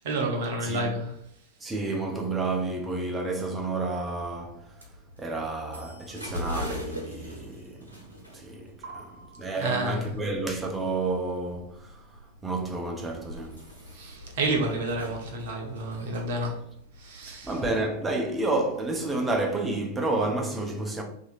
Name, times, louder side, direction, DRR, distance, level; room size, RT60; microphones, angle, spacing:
voice 1, 0.0-1.1 8.8-10.1 13.9-16.6 17.0-17.5, right 2 dB, 55° right, 0.8 m, -30 dB
voice 2, 0.6-1.0 1.6-4.8 5.2-9.1 9.4-13.7 17.3-21.0, right 2 dB, 15° right, 0.7 m, -30 dB
sound 1, 4.2-19.3, left 1 dB, 85° right, 0.9 m, -43 dB
2.8 x 2.8 x 4.0 m
figure-of-eight pair, 90°, 0 cm